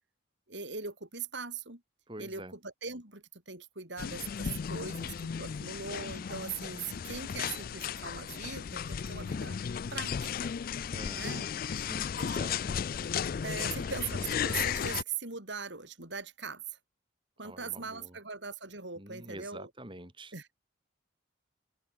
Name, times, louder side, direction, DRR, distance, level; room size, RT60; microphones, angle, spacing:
voice 1, 0.5-1.8 2.2-9.6 9.9-10.5 11.1-11.5 12.2-12.4 13.4-16.8 17.4-19.7 20.3-20.6, right 5 dB, 65° right, 6.1 m, -41 dB
voice 2, 2.1-2.6 10.9-11.5 11.7-12.7 13.5-13.9 17.4-18.2 18.9-20.3, right 1 dB, 25° right, 6.4 m, -46 dB
sound 1, 4.0-15.0, left 7 dB, 50° left, 0.4 m, -35 dB
open air
head